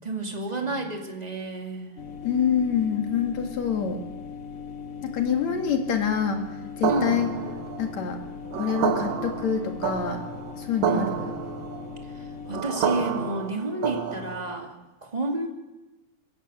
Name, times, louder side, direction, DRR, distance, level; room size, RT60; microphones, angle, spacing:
voice 1, 0.0-1.9 6.9-7.3 10.9-11.1 12.2-14.7 15.0-15.5, right 2 dB, 15° right, 2 dB, 2.3 m, -30 dB
sound 1, 2.0-12.6, left 6 dB, 40° left, 1.4 m, -39 dB
voice 2, 2.2-4.0 5.0-6.5 6.8-7.3 7.8-8.2 8.6-10.2 10.6-11.3, left 7 dB, 65° left, 4 dB, 3.2 m, -26 dB
sound 2, 6.8-14.6, right 7 dB, 70° right, 2.6 m, -30 dB
21.0 x 15.5 x 8.9 m, 1.1 s
omnidirectional pair, 3.4 m